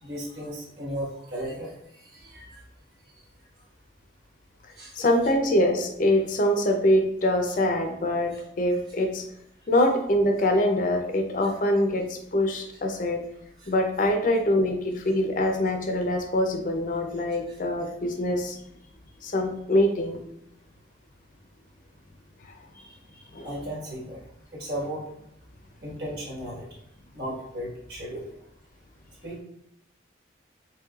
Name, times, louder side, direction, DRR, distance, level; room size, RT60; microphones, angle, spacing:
voice 1, 0.0-2.5 4.7-4.9 8.3-8.4 13.6-13.7 17.5-17.6 22.7-24.3 24.5-25.1 25.8-26.7 27.1-28.3 29.2-29.4, equal, 60° right, -4 dB, 1.4 m, -36 dB
voice 2, 4.9-9.2 9.7-13.2 13.7-18.6 19.2-20.2 23.3-23.5, left 1 dB, 45° left, 3 dB, 0.5 m, -24 dB
4.5 x 3.2 x 2.3 m, 0.76 s
head